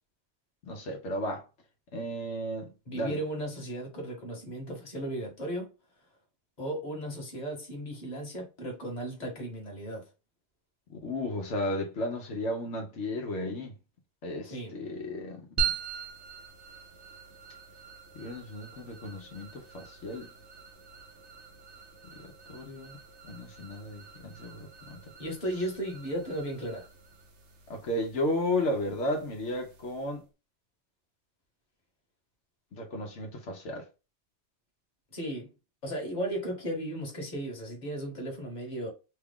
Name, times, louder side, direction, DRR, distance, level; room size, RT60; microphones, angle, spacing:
voice 1, 0.6-1.4 1.9-3.2 11.0-13.7 14.2-15.7 18.1-20.3 22.2-23.0 23.3-25.0 27.7-30.2 32.7-33.8, left 1 dB, 80° left, 1.1 m, -34 dB
voice 2, 2.9-5.7 6.6-10.1 14.5-14.8 25.2-26.9 35.1-35.5 35.8-38.9, right 1 dB, 40° left, 1.3 m, -35 dB
sound 1, 15.6-30.2, right 6 dB, 75° right, 1.0 m, -41 dB
3.1 x 2.3 x 3.5 m
omnidirectional pair, 1.2 m